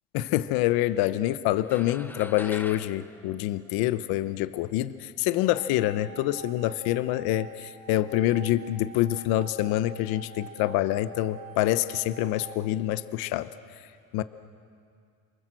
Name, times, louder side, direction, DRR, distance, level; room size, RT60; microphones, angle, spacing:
voice 1, 0.1-13.5 13.8-13.9 14.1-14.2, left 14 dB, 80° left, 13 dB, 0.9 m, -26 dB
sound 1, 1.6-4.3, left 1 dB, 5° left, 0.9 m, -44 dB
sound 2, 5.5-12.5, right 8 dB, 80° right, 4.4 m, -47 dB
28.0 x 24.0 x 7.7 m, 2.3 s
cardioid pair, 120°, 36 cm